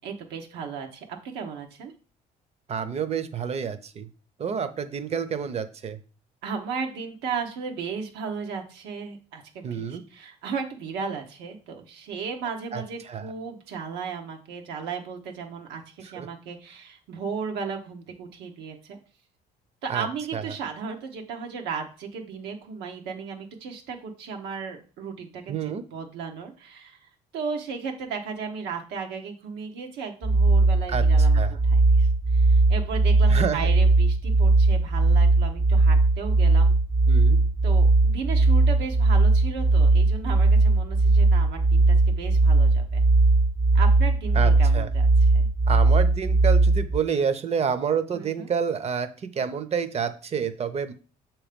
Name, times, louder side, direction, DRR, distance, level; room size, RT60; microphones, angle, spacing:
voice 1, 0.0-1.9 6.4-19.0 19.8-27.0 27.3-36.7 37.6-43.0 43.7-45.5 48.1-48.5, right 5 dB, 90° right, 3 dB, 1.1 m, -35 dB
voice 2, 2.7-4.1 4.4-6.0 9.6-10.0 12.7-12.8 13.1-13.3 16.2-16.3 19.9-20.1 20.3-20.4 25.5-25.8 30.9-31.0 31.3-31.5 33.3-33.7 37.1-37.4 44.3-44.9 45.7-50.9, right 7 dB, 40° right, 12 dB, 0.7 m, -28 dB
sound 1, 30.2-47.0, right 3 dB, 10° right, 0.3 m, -19 dB
6.7 x 3.0 x 5.1 m, 0.37 s
cardioid pair, 110°, 17 cm